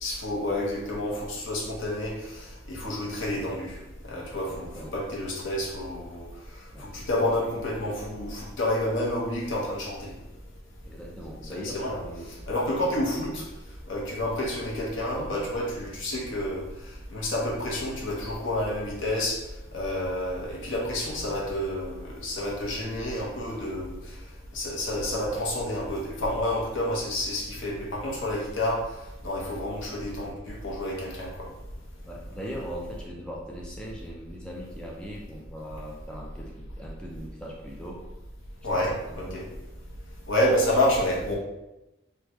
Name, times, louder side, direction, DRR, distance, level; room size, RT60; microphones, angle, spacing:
voice 1, 0.0-3.8 4.0-6.3 6.8-10.1 11.5-12.0 12.3-13.4 13.9-16.7 17.1-19.4 19.7-24.1 24.5-28.8 29.2-31.5 38.6-39.5 40.3-41.3, left 1 dB, 80° left, -3 dB, 0.8 m, -29 dB
voice 2, 4.6-5.0 6.7-6.9 10.8-12.3 32.0-38.0 38.8-39.4, equal, 5° left, -3 dB, 0.4 m, -40 dB
3.3 x 2.2 x 2.9 m, 0.98 s
head